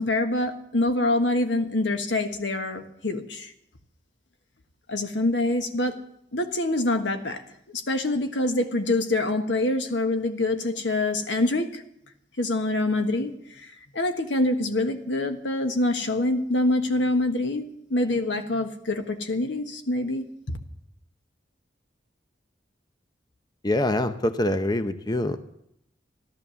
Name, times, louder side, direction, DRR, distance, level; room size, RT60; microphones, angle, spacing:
voice 1, 0.0-3.5 4.9-6.0 6.3-7.4 7.7-11.8 12.4-13.3 13.6-20.6, left 2 dB, 90° left, 1.4 m, -25 dB
voice 2, 23.6-25.4, left 1 dB, 25° left, 0.7 m, -24 dB
14.5 x 12.5 x 7.0 m
head